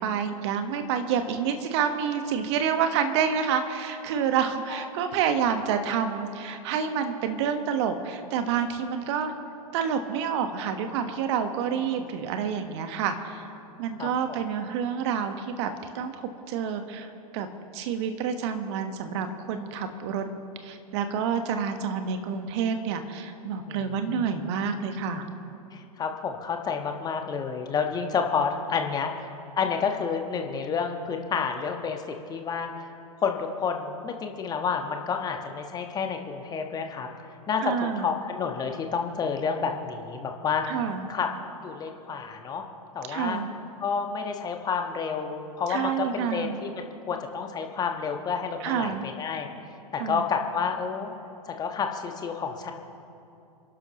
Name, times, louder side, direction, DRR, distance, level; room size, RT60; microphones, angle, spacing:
voice 1, 0.0-9.3 9.7-13.5 13.8-17.5 17.7-20.3 20.6-25.3 37.6-38.1 40.7-41.0 43.1-43.5 45.7-46.6 48.6-49.1 50.0-50.2, right 7 dB, 45° right, 7 dB, 1.3 m, -28 dB
voice 2, 11.7-12.1 14.0-14.4 23.7-24.2 25.7-29.3 29.6-32.0 32.3-32.9 33.2-37.1 37.5-40.8 41.1-41.3 41.6-42.6 42.9-43.4 43.8-49.5 49.9-51.1 51.5-52.7, left 6 dB, 20° left, 4 dB, 1.3 m, -30 dB
28.0 x 11.5 x 3.1 m, 2.7 s
figure-of-eight pair, 100°, 20 cm